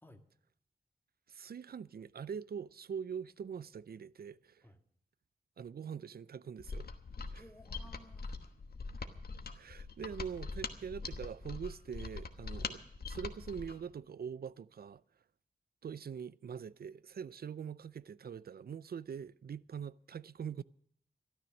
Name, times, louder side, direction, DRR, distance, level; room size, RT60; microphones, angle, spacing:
voice 1, 1.3-4.7 5.6-6.9 7.3-7.4 9.0-9.1 9.5-12.8 13.1-15.0 15.8-20.6, right 7 dB, 75° right, 0.4 m, -43 dB
Mechanisms, 6.6-13.8, left 4 dB, 75° left, 1.2 m, -43 dB
voice 2, 7.3-8.5 10.0-10.2, left 2 dB, 10° left, 1.7 m, -58 dB
13.5 x 12.0 x 6.3 m
wide cardioid pair, 90°, 16 cm